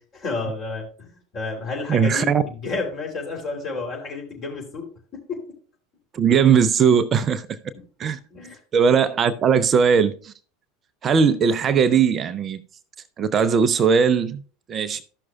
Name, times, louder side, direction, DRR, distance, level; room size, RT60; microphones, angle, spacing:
voice 1, 0.2-4.9 5.1-5.4 8.3-8.6, left 3 dB, 40° left, 3.4 m, -31 dB
voice 2, 1.9-2.4 6.1-7.6 8.0-8.2 8.7-10.3 11.0-12.6 13.2-14.4 14.7-15.0, right 6 dB, 35° right, 0.5 m, -19 dB
14.0 x 6.0 x 2.4 m
figure-of-eight pair, 80°, 0 cm